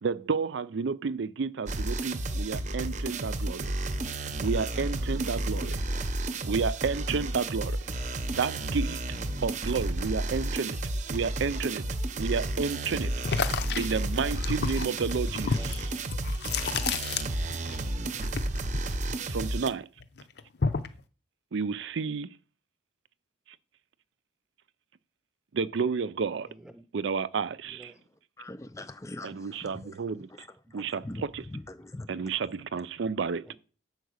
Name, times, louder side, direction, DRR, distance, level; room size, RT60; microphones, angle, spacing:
voice 1, 0.0-3.7 4.4-5.8 6.4-7.8 8.3-9.1 9.4-10.8 11.1-11.9 12.2-16.0 19.3-19.9 21.5-22.4 25.5-26.5 26.9-27.9 29.2-30.5 30.7-31.4 32.1-33.4, right 5 dB, 65° right, 0.4 m, -31 dB
sound 1, 1.7-19.7, right 1 dB, 35° right, 0.7 m, -32 dB
voice 2, 5.7-6.1 7.9-8.1 11.8-12.0 13.1-13.5 15.4-15.8 26.5-26.8 27.7-28.0 31.8-31.9 33.4-33.6, right 1 dB, 5° right, 0.9 m, -50 dB
sound 2, 13.2-17.8 18.0-19.7 20.0-21.0, left 5 dB, 55° left, 0.7 m, -31 dB
voice 3, 28.4-32.4, left 2 dB, 15° left, 0.4 m, -43 dB
8.0 x 4.7 x 6.4 m
head